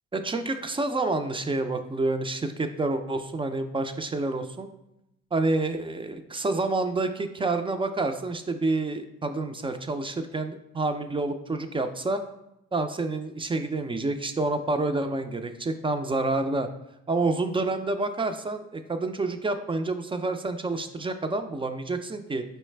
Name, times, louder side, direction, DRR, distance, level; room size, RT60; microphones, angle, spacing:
voice 1, 0.1-4.7 5.3-12.2 12.7-16.7 17.1-22.4, right 2 dB, 20° right, 8 dB, 0.3 m, -28 dB
4.6 x 3.2 x 3.2 m, 0.84 s
cardioid pair, 90°, 30 cm